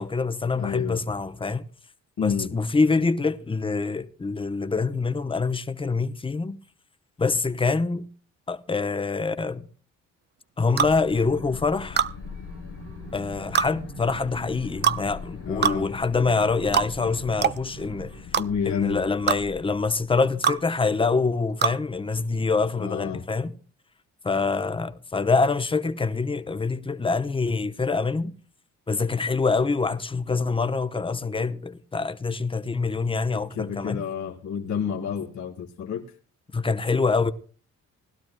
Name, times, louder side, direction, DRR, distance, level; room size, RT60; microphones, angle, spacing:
voice 1, 0.0-1.6 2.2-6.6 7.2-8.1 8.5-9.7 10.6-12.0 13.1-18.3 18.6-23.5 24.2-28.3 28.9-34.0 36.5-37.3, left 4 dB, 15° left, 0.8 m, -25 dB
voice 2, 0.5-1.0 2.2-2.5 15.4-15.9 18.4-19.0 22.8-23.2 33.3-36.1, left 7 dB, 70° left, 1.6 m, -29 dB
sound 1, 10.8-20.7, left 6 dB, 50° left, 0.9 m, -42 dB
sound 2, 10.8-11.0 12.0-12.1 13.5-13.7 14.8-15.0 15.6-15.8 16.7-16.9 17.4-17.6 18.3-18.5 19.3-19.4 20.4-20.6 21.6-21.8, right 8 dB, 35° right, 0.5 m, -22 dB
sound 3, 11.7-18.2, right 7 dB, 90° right, 2.1 m, -47 dB
20.0 x 12.0 x 2.2 m
cardioid pair, 90°, 30 cm